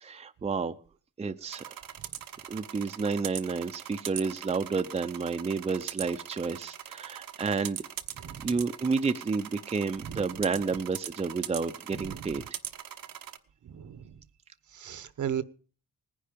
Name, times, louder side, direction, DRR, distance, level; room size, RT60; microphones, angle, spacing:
voice 1, 0.0-0.8 1.2-1.6 2.5-7.8 8.4-12.6, right 4 dB, 20° right, 8 dB, 0.6 m, -30 dB
sound 1, 1.5-13.4, right 10 dB, 85° right, 1.1 m, -41 dB
voice 2, 12.0-12.3 13.6-14.0 14.7-15.4, right 9 dB, 60° right, 15 dB, 1.0 m, -35 dB
19.0 x 10.0 x 5.2 m, 0.40 s
cardioid pair, 110°, 34 cm